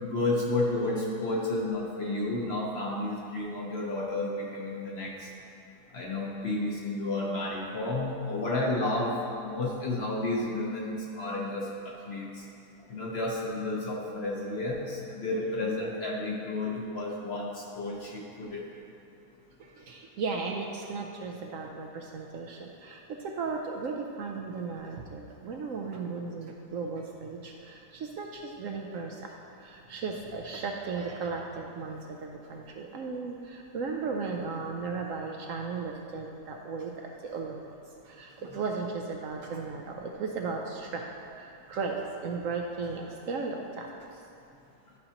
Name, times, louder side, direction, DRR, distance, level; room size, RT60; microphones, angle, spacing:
voice 1, 0.0-5.3 5.9-12.4 12.9-18.7 25.5-25.6, left 2 dB, 50° left, -3 dB, 1.0 m, -31 dB
voice 2, 19.6-29.3 29.6-37.6 38.0-41.1 41.4-43.9, right 4 dB, 70° right, 1 dB, 0.9 m, -36 dB
11.5 x 5.3 x 2.9 m, 2.6 s
omnidirectional pair, 1.7 m